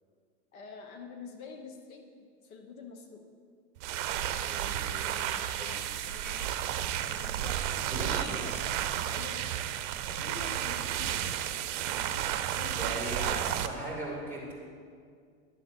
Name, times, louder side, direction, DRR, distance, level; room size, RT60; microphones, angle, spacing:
voice 1, 0.5-2.1 2.4-3.2 4.9-6.6 7.0-9.5 10.1-11.3 11.8-12.3 12.6-13.5, left 5 dB, 85° left, 4 dB, 1.2 m, -47 dB
sound 1, 3.8-13.7, right 11 dB, 60° right, 0.6 m, -32 dB
voice 2, 4.4-5.1 5.6-5.8 6.7-6.9 7.9-8.2 12.8-14.5, right 1 dB, 5° left, -4 dB, 2.4 m, -38 dB
sound 2, 5.2-5.4 5.9-6.0 6.2-6.3 7.1-7.2 8.1-8.6 9.4-9.5 9.9-10.2 11.1-11.5 12.0-12.1, equal, 30° left, 2.6 m, -46 dB
11.0 x 3.7 x 7.1 m, 2.1 s
supercardioid pair, 135°, 42 cm